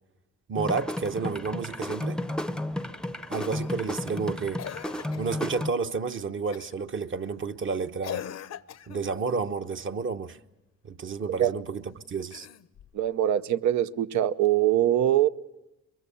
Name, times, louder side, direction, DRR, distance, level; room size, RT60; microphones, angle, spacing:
voice 1, 0.5-2.2 3.3-4.6 5.2-8.2 8.9-10.4 10.8-12.5, right 5 dB, 40° right, 1.1 m, -31 dB
sound 1, 0.6-5.7, left 1 dB, ahead, 0.7 m, -33 dB
Cough, 3.4-3.8 4.6-5.3 6.5-6.8 8.0-9.1 12.2-13.0 14.4-14.5, left 10 dB, 60° left, 0.7 m, -40 dB
voice 2, 12.9-15.3, right 12 dB, 70° right, 0.8 m, -23 dB
23.0 x 22.5 x 6.9 m
cardioid pair, 90°, 30 cm